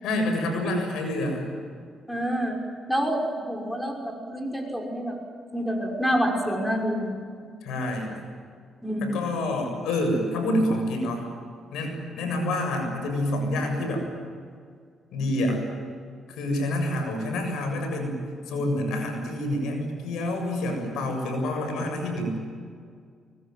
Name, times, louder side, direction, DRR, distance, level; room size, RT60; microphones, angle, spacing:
voice 1, 0.0-1.5 7.6-8.2 9.0-11.3 11.7-14.1 15.1-15.6 16.3-18.2 18.5-22.4, left 1 dB, 85° left, 4 dB, 7.3 m, -27 dB
voice 2, 2.1-2.6 2.9-3.2 3.5-5.2 5.5-7.1 8.8-9.2, equal, 5° left, 1 dB, 5.9 m, -27 dB
24.5 x 23.0 x 9.5 m, 2.1 s
cardioid pair, 90°, 0 cm